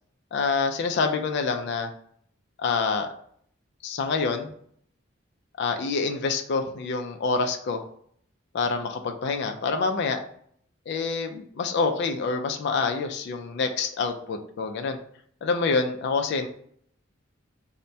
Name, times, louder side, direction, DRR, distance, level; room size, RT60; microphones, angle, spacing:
voice 1, 0.3-1.9 2.6-3.1 3.8-4.5 5.6-7.8 8.5-10.2 10.9-15.0 15.4-16.5, left 4 dB, 60° left, 5 dB, 0.3 m, -26 dB
2.6 x 2.1 x 3.2 m, 0.63 s
head